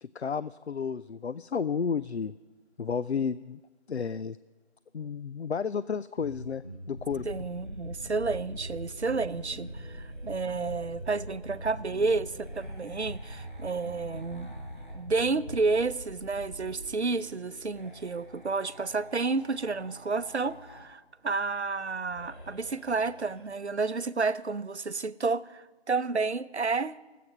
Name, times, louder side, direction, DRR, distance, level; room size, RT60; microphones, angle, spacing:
voice 1, 0.0-2.3 2.8-3.6 3.9-4.4 4.9-6.6 6.9-7.2, left 6 dB, 75° left, 16 dB, 0.5 m, -32 dB
Bass guitar, 6.2-15.8, equal, 20° left, 4.4 m, -44 dB
sound 1, 7.0-15.0 15.9-20.9 22.0-23.5, equal, 50° left, 5.2 m, -51 dB
sound 2, 7.0-17.0, right 1 dB, 60° right, 0.9 m, -46 dB
voice 2, 7.2-14.5 14.9-27.0, right 4 dB, 80° right, 15 dB, 0.7 m, -30 dB
24.5 x 8.4 x 5.6 m, 1.2 s
figure-of-eight pair, 180°, 33 cm